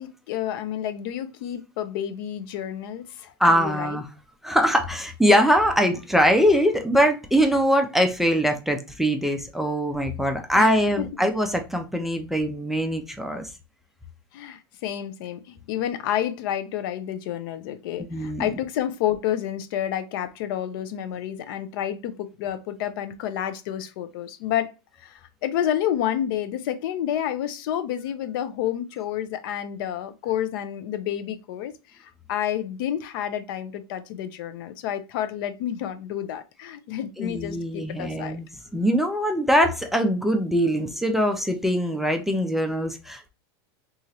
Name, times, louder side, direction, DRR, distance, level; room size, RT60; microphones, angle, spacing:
voice 1, 0.0-4.0 10.6-11.1 14.3-24.7 25.0-38.4, left 10 dB, 65° left, 0.4 m, -30 dB
voice 2, 3.4-4.1 4.4-13.5 18.1-18.5 37.2-38.5 38.7-43.3, equal, ahead, 0.4 m, -22 dB
2.9 x 2.4 x 2.7 m
supercardioid pair, 130°, 13 cm